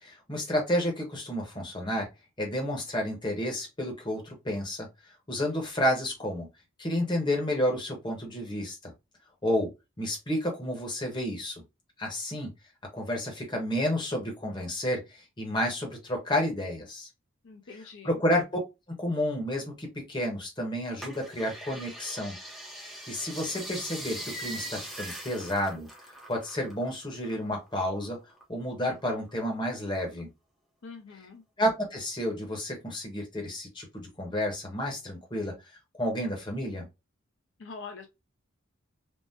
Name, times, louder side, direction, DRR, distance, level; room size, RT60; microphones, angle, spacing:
voice 1, 0.0-2.1 2.4-6.5 6.8-8.9 9.4-9.7 10.0-11.6 12.0-12.5 12.9-17.1 18.0-18.4 19.0-22.4 22.8-25.9 26.3-28.2 28.5-30.3 31.6-35.5 35.9-36.9, left 1 dB, 20° left, 0.9 m, -31 dB
voice 2, 17.4-18.2 30.8-31.4 37.6-38.1, left 4 dB, 60° left, 0.5 m, -44 dB
sound 1, 21.0-26.9 27.1-28.4 28.9-29.7 30.2-30.3, right 1 dB, ahead, 0.6 m, -41 dB
3.5 x 2.0 x 2.6 m
head